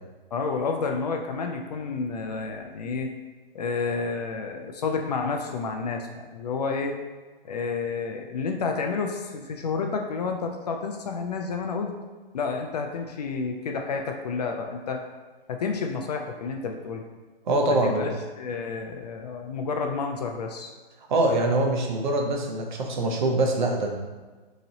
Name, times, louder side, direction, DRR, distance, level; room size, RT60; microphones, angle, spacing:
voice 1, 0.3-3.1 3.5-7.0 7.4-11.9 12.3-15.0 15.5-17.0 17.7-18.1 18.4-20.7, left 4 dB, 45° left, 3 dB, 0.4 m, -30 dB
voice 2, 17.5-18.1 21.1-23.9, right 2 dB, 55° right, 1 dB, 0.7 m, -24 dB
3.9 x 3.0 x 2.8 m, 1.3 s
hypercardioid pair, 145°, 29 cm